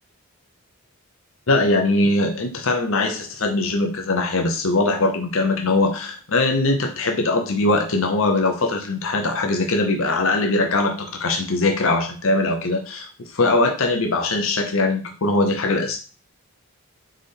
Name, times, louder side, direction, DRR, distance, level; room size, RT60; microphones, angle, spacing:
voice 1, 1.5-13.1 13.3-16.0, left 2 dB, 60° left, 4 dB, 0.7 m, -21 dB
4.0 x 3.8 x 3.4 m, 0.35 s
head